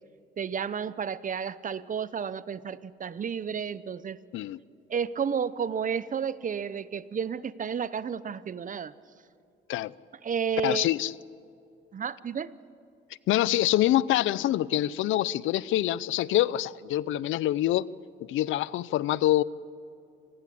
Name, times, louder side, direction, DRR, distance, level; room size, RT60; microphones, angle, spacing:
voice 1, 0.4-4.2 4.9-8.9 10.2-10.9 11.9-12.5, right 7 dB, 40° right, 17 dB, 0.8 m, -31 dB
voice 2, 10.6-11.1 13.3-17.9 18.2-19.4, left 14 dB, 80° left, 20 dB, 0.6 m, -25 dB
27.0 x 19.5 x 8.6 m, 2.6 s
cardioid pair, 90°, 20 cm